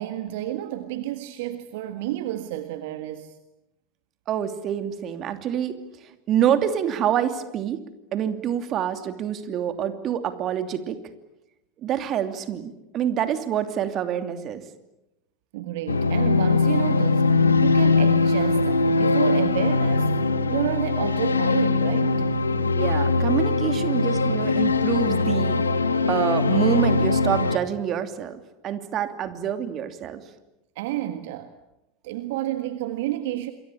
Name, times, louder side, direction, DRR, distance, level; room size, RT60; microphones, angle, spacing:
voice 1, 0.0-3.4 15.5-20.1 20.5-22.4 30.7-31.5 32.0-33.5, right 13 dB, 60° right, 1.6 m, -30 dB
voice 2, 4.3-5.8 6.3-7.8 8.1-11.0 11.8-14.6 22.7-25.6 26.1-30.2, right 9 dB, 40° right, 2.8 m, -26 dB
sound 1, 15.9-27.6, left 3 dB, 85° left, 1.4 m, -21 dB
27.5 x 23.0 x 8.8 m
figure-of-eight pair, 80°, 0 cm